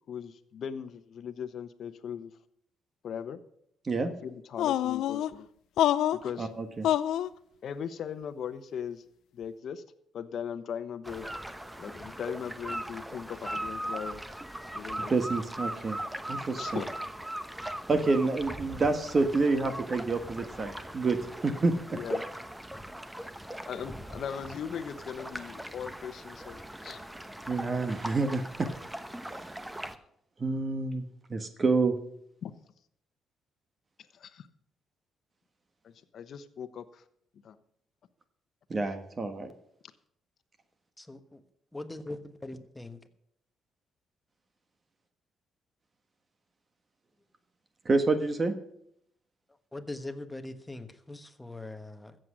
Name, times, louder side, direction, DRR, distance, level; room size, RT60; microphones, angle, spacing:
voice 1, 0.1-2.3 3.0-3.4 4.0-5.5 6.1-6.5 7.6-9.0 9.3-9.8 10.1-11.3 11.8-14.2 14.7-15.1 16.6-16.9 21.9-22.2 23.2-23.3 23.7-27.0 32.4-32.5 34.1-34.5 35.8-37.0 37.4-37.6, left 8 dB, 65° left, 12 dB, 1.0 m, -39 dB
sound 1, 4.6-5.3 5.8-6.3 6.8-7.3, left 11 dB, 80° left, 0.5 m, -26 dB
voice 2, 6.4-6.9 15.1-16.0 16.3-16.8 17.9-21.2 21.4-21.7 27.5-28.7 29.2-29.6 30.4-31.0 31.3-31.9 38.7-39.5 47.8-48.5, right 3 dB, 35° right, 8 dB, 1.4 m, -28 dB
sound 2, 11.0-30.0, right 1 dB, 10° right, 1.0 m, -39 dB
voice 3, 41.0-41.4 41.7-42.2 42.4-43.0 49.7-52.2, left 2 dB, 10° left, 9 dB, 1.3 m, -41 dB
14.5 x 7.8 x 6.3 m, 0.72 s
cardioid pair, 90°, 0 cm